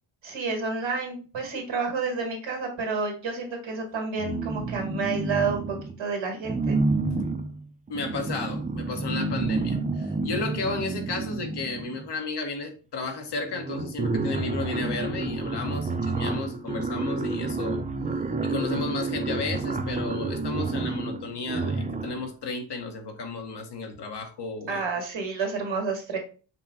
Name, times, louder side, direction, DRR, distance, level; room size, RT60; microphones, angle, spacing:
voice 1, 0.2-6.8 24.7-26.2, right 4 dB, 65° right, 1.9 m, -30 dB
sound 1, 4.2-6.0 6.4-12.1 13.0-13.1 13.4-22.3, right 3 dB, 15° right, 0.4 m, -29 dB
voice 2, 7.9-17.8 18.4-25.0, left 4 dB, 55° left, 1.1 m, -33 dB
5.6 x 2.2 x 4.1 m
cardioid pair, 85°, 49 cm